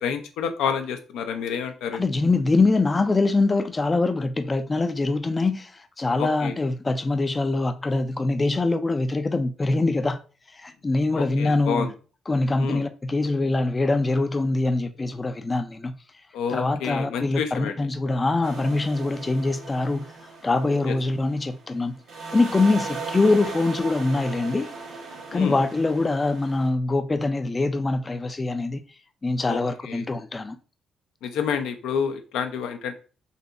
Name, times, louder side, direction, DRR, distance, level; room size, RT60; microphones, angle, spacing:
voice 1, 0.0-2.0 6.2-6.6 11.1-11.9 12.6-12.8 16.3-17.7 20.9-21.0 25.3-25.6 29.4-30.0 31.2-32.9, left 7 dB, 90° left, 0.5 m, -29 dB
voice 2, 1.9-10.2 10.5-11.9 12.3-16.0 16.5-20.1 20.4-22.0 22.3-24.7 25.3-28.8 29.2-30.6, left 3 dB, 25° left, 0.4 m, -23 dB
sound 1, 18.4-21.8 22.1-26.7, right 4 dB, 80° right, 1.2 m, -37 dB
4.0 x 2.7 x 2.5 m
cardioid pair, 90°, 0 cm